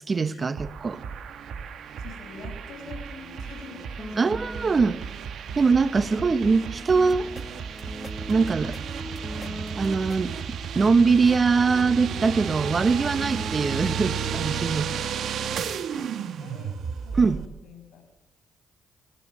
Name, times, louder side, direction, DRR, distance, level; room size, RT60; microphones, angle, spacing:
voice 1, 0.1-1.0 4.2-5.0 5.6-7.4 8.3-8.7 9.8-14.9 17.2-17.4, right 4 dB, 40° right, 1.2 m, -22 dB
sound 1, 0.6-17.5, right 7 dB, 65° right, 1.5 m, -33 dB
voice 2, 2.0-4.9 5.3-6.4 7.8-8.2 8.6-9.7 13.2-13.4 14.8-15.7 16.4-16.8 17.0-18.1, left 5 dB, 70° left, 6.4 m, -46 dB
sound 2, 4.0-5.1 5.8-10.3 11.1-14.5, equal, 5° left, 1.5 m, -42 dB
sound 3, 7.0-7.4 7.8-8.8 9.2-10.2, left 1 dB, 25° left, 2.4 m, -44 dB
30.0 x 15.0 x 7.9 m
hypercardioid pair, 45°, 0 cm